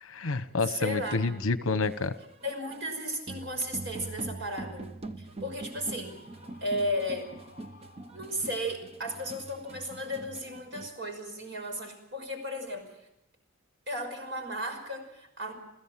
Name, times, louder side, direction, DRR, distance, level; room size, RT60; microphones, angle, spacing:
voice 1, 0.0-2.1, left 3 dB, 70° left, 13 dB, 1.0 m, -29 dB
voice 2, 0.8-1.4 2.4-4.8 5.2-6.2 6.6-7.3 8.1-12.9 13.9-15.5, equal, 55° right, 4 dB, 5.6 m, -34 dB
sound 1, 1.8-10.9, right 2 dB, 30° right, 0.9 m, -44 dB
Screaming, 6.0-8.7, left 2 dB, 40° left, 7.1 m, -56 dB
29.0 x 16.0 x 7.4 m, 0.89 s
head